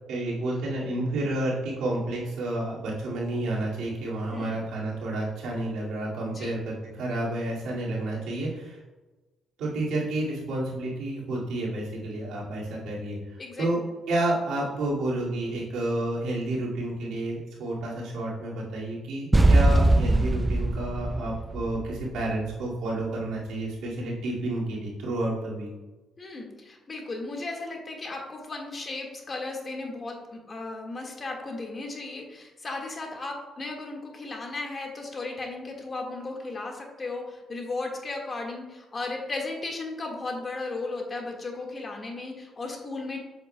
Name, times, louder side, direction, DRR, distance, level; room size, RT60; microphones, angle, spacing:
voice 1, 0.1-8.8 9.6-13.2 13.6-13.8 14.1-25.7, right 1 dB, 85° right, -4 dB, 2.1 m, -30 dB
sound 1, 19.3-22.3, right 2 dB, 15° right, 0.4 m, -21 dB
voice 2, 26.2-43.2, left 3 dB, 35° left, 1 dB, 1.6 m, -35 dB
7.9 x 7.1 x 2.2 m, 1.2 s
cardioid pair, 90°, 0 cm